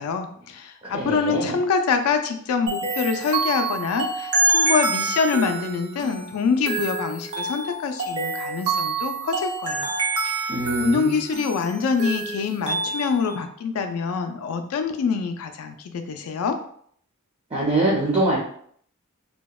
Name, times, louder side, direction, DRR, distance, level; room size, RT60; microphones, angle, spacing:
voice 1, 0.0-9.9 10.2-16.6, left 5 dB, 75° left, 7 dB, 0.3 m, -25 dB
voice 2, 0.8-1.5 10.5-11.2 17.5-18.4, right 1 dB, 25° right, -5 dB, 0.5 m, -23 dB
sound 1, 2.7-13.3, right 3 dB, 75° right, 0.7 m, -27 dB
2.8 x 2.0 x 2.2 m, 0.62 s
head